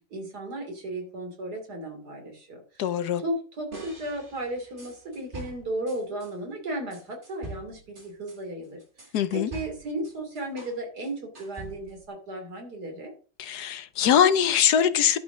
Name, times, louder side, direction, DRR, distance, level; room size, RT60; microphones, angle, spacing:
voice 1, 0.1-2.9 3.2-8.8 9.3-13.1, right 1 dB, 90° right, 3.5 m, -35 dB
voice 2, 2.8-3.2 9.1-9.5 13.4-15.2, left 9 dB, 90° left, 1.4 m, -22 dB
sound 1, 3.7-6.3 6.9-10.8 11.0-12.1, right 2 dB, 30° right, 2.6 m, -44 dB
11.0 x 5.2 x 6.2 m
omnidirectional pair, 1.7 m